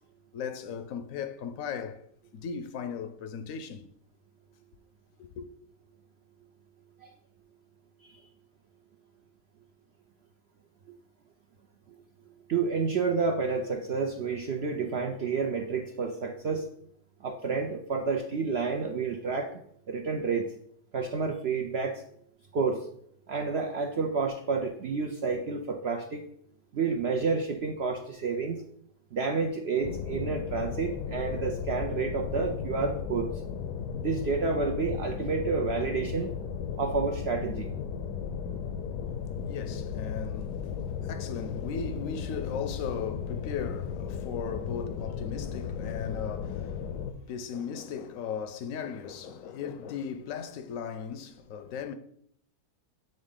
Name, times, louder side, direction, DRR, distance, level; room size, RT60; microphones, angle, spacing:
voice 1, 0.3-2.0 2.3-3.9 5.2-5.5 39.4-40.6 41.0-46.9 47.3-51.9, left 7 dB, 70° left, 0.9 m, -37 dB
voice 2, 12.5-16.7 17.2-19.5 19.9-20.5 20.9-22.0 22.5-22.9 23.3-26.2 26.7-28.6 29.1-33.3 34.0-36.3 36.8-37.7, right 4 dB, 65° right, 0.6 m, -30 dB
sound 1, 29.8-47.1, left 7 dB, 85° left, 1.2 m, -35 dB
8.0 x 3.8 x 3.7 m
omnidirectional pair, 1.7 m